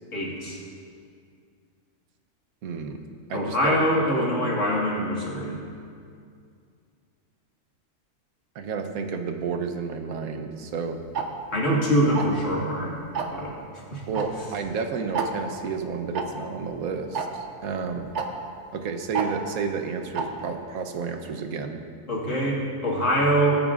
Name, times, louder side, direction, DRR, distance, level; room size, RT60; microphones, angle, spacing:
voice 1, 0.1-0.6 3.3-5.6 11.5-12.9 13.3-14.0 22.1-23.7, equal, 60° left, -4 dB, 2.3 m, -24 dB
voice 2, 2.6-3.0 3.3-3.8 8.5-11.0 14.1-18.1 18.7-21.8, right 5 dB, 85° right, 5 dB, 1.2 m, -31 dB
Tick-tock, 11.1-11.3 12.1-12.4 13.1-13.4 14.1-14.3 14.5-14.6 15.1-15.3 16.1-16.2 17.1-17.3 18.1-18.3 19.1-19.3 20.1-20.3, right 6 dB, 60° right, 1.0 m, -27 dB
18.5 x 8.9 x 2.5 m, 2.3 s
omnidirectional pair, 1.5 m